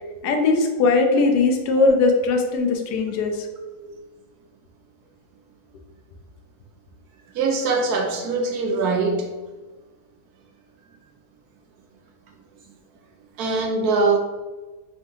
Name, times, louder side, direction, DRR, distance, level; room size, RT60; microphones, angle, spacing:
voice 1, 0.2-3.4, left 3 dB, 85° left, 4 dB, 1.2 m, -19 dB
voice 2, 7.3-9.3 13.4-14.2, right 3 dB, 75° right, 3 dB, 1.2 m, -22 dB
4.4 x 3.7 x 2.7 m, 1.2 s
omnidirectional pair, 1.7 m